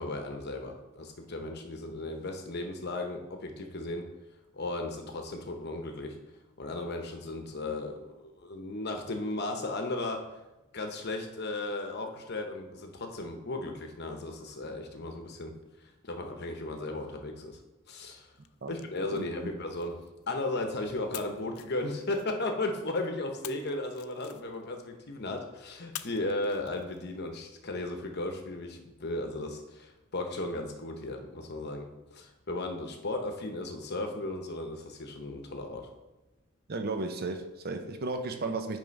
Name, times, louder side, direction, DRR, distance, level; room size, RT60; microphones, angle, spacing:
voice 1, 0.0-4.0 4.5-6.2 6.6-10.2 10.7-15.6 16.0-17.6 17.9-18.3 18.7-20.0 20.3-35.9, left 2 dB, 50° left, 4 dB, 0.9 m, -35 dB
sound 1, 18.4-20.6 21.1-22.7 23.4-24.8 25.9-27.3, left 12 dB, 80° left, 0.4 m, -48 dB
voice 2, 19.1-19.5 36.7-38.8, right 3 dB, 45° right, 6 dB, 0.6 m, -34 dB
9.1 x 3.5 x 5.3 m, 1.0 s
head